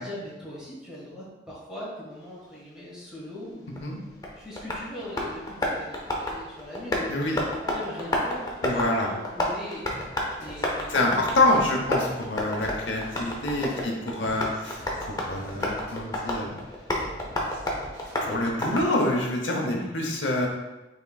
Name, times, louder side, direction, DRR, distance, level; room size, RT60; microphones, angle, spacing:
voice 1, 0.0-4.0 4.3-7.2 7.6-9.8 10.4-11.7 19.7-19.9, left 1 dB, 5° right, -8 dB, 1.5 m, -40 dB
Tap, 3.7-19.2, left 1 dB, 20° left, 0.6 m, -32 dB
voice 2, 8.6-9.1 10.9-16.5 18.2-20.5, left 2 dB, 85° left, 0 dB, 0.8 m, -26 dB
sound 1, 9.9-18.5, right 1 dB, 80° right, 1.4 m, -45 dB
5.8 x 3.6 x 2.3 m, 1.1 s
head